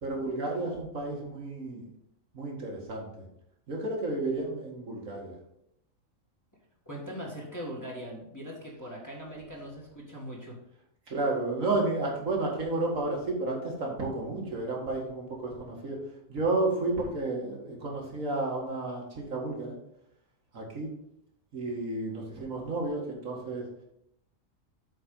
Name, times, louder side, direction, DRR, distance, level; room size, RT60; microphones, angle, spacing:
voice 1, 0.0-1.8 2.3-3.3 3.7-5.4 11.1-16.0 16.3-19.7 20.5-20.9 21.5-23.7, right 2 dB, 75° right, -1 dB, 2.3 m, -32 dB
voice 2, 6.9-10.6, equal, 15° left, -4 dB, 1.7 m, -40 dB
7.9 x 4.4 x 5.4 m, 0.78 s
omnidirectional pair, 1.4 m